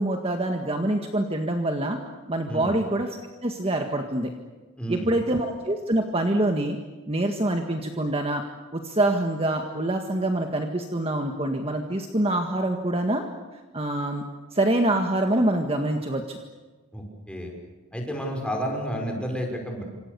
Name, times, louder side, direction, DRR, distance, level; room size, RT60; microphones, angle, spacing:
voice 1, 0.0-2.0 2.3-4.3 4.9-6.8 7.1-8.4 8.7-13.2 13.7-14.2 14.5-16.4, right 1 dB, 30° right, 4 dB, 1.8 m, -25 dB
voice 2, 2.5-2.8 4.8-5.2 16.9-17.5 17.9-19.8, equal, 5° left, 1 dB, 6.0 m, -31 dB
28.0 x 26.5 x 7.0 m, 1.2 s
head